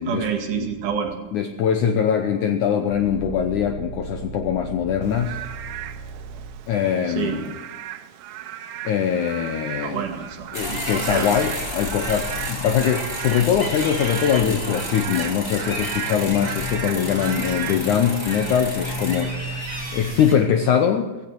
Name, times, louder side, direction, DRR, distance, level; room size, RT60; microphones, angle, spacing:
voice 1, 0.0-1.1 7.1-7.4 9.8-11.3, right 7 dB, 60° right, 1 dB, 3.2 m, -28 dB
voice 2, 1.3-5.4 6.7-7.5 8.8-10.1 10.5-19.6 19.9-21.1, left 8 dB, 75° left, 6 dB, 1.9 m, -22 dB
sound 1, 2.9-6.9 12.5-13.9 14.2-14.4 20.5-20.6, right 4 dB, 25° left, 3.0 m, -38 dB
Frog / Rain, 5.0-18.5, right 11 dB, 85° right, 2.7 m, -36 dB
sound 2, 10.5-20.3, left 1 dB, 5° left, 3.6 m, -30 dB
16.5 x 16.5 x 4.6 m, 1.2 s
omnidirectional pair, 4.4 m